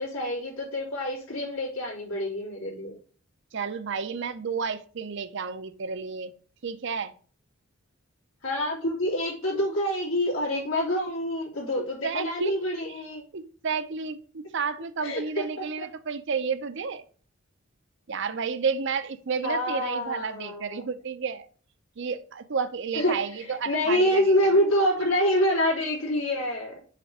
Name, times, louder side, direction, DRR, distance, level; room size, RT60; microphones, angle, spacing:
voice 1, 0.0-3.0 8.4-13.2 15.0-15.2 19.4-20.8 23.0-23.1 23.5-26.9, left 1 dB, 85° left, 3.4 m, -26 dB
voice 2, 3.5-6.3 6.6-7.1 11.8-12.6 12.9-13.0 13.3-17.0 18.1-21.5 22.0-24.3, right 5 dB, 65° right, 0.6 m, -31 dB
6.7 x 3.4 x 6.1 m
head